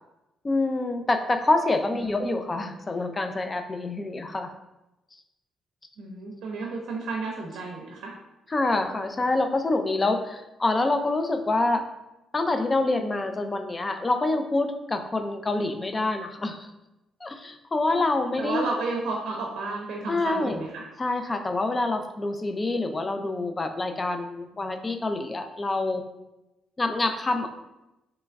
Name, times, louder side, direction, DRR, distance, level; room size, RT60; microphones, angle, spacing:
voice 1, 0.4-4.5 8.5-11.8 12.3-16.7 17.2-18.7 20.1-20.6 21.0-26.0 26.8-27.5, left 2 dB, 25° left, 6 dB, 0.3 m, -26 dB
voice 2, 1.9-2.4 6.0-8.1 18.4-20.9, right 3 dB, 75° right, -1 dB, 0.6 m, -32 dB
3.0 x 2.3 x 3.4 m, 0.95 s
cardioid pair, 90°, 0 cm